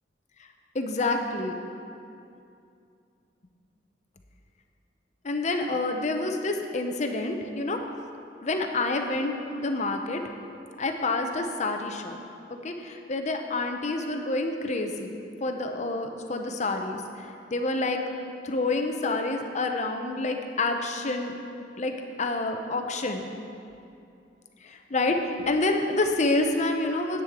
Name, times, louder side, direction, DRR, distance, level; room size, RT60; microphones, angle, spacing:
voice 1, 0.7-1.6 5.2-7.8 8.4-10.2 10.8-12.2 12.5-15.1 15.4-18.0 18.4-21.3 21.8-23.3 24.6-27.2, left 2 dB, 40° left, 5 dB, 0.7 m, -28 dB
10.5 x 8.3 x 3.6 m, 2.6 s
head